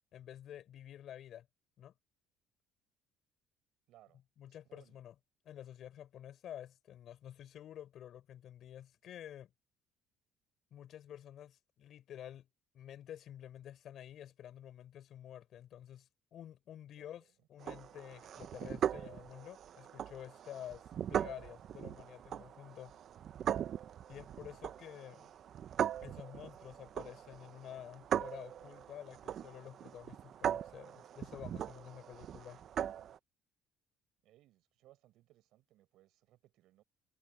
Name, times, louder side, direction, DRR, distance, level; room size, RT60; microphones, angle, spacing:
voice 1, 0.1-1.5 1.8-1.9 4.4-5.1 5.4-9.5 10.7-12.5 12.7-17.2 17.5-20.8 21.1-23.0 24.1-25.3 26.0-32.6, left 10 dB, 60° left, 4.6 m, -50 dB
voice 2, 3.9-4.2 4.5-5.0 17.0-17.5 34.2-36.8, right 15 dB, 70° right, 6.7 m, -66 dB
sound 1, 17.6-33.2, right 9 dB, 55° right, 1.0 m, -40 dB
supercardioid pair, 85°, 0 cm